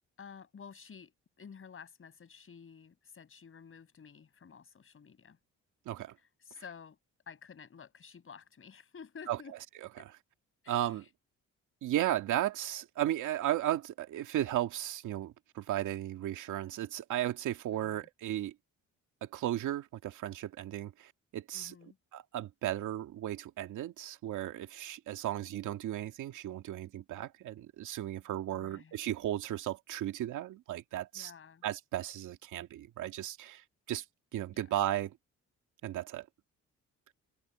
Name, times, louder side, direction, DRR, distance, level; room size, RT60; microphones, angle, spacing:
voice 1, 0.2-1.1 1.4-5.4 6.4-7.0 7.3-9.6 10.0-10.1 10.6-11.1 17.8-18.1 21.5-22.0 28.5-28.9 31.1-31.6 34.5-34.6, left 6 dB, 45° left, 6.5 m, -51 dB
voice 2, 10.7-11.0 11.8-18.5 19.2-21.7 22.1-31.3 31.6-33.6 33.9-34.0 34.3-35.1 35.8-36.3, right 13 dB, 85° right, 2.4 m, -35 dB
cardioid pair, 90°, 30 cm